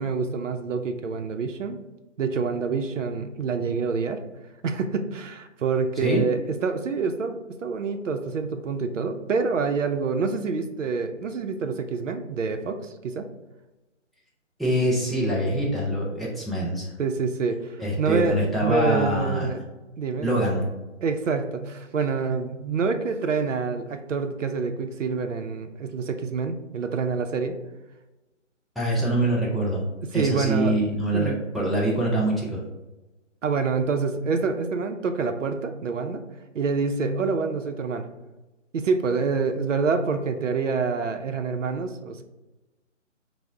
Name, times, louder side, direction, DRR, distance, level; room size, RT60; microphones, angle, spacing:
voice 1, 0.0-1.8 2.2-4.2 4.6-13.3 17.0-19.6 20.0-20.4 21.0-27.5 30.1-30.7 31.1-31.4 33.4-36.2 36.5-38.1 38.7-42.2, right 4 dB, 75° right, 7 dB, 0.5 m, -27 dB
voice 2, 14.6-16.9 17.8-19.6 20.2-20.7 28.8-29.9 30.1-32.6, right 1 dB, ahead, -6 dB, 0.4 m, -24 dB
3.3 x 2.0 x 3.5 m, 1.1 s
hypercardioid pair, 175°, 38 cm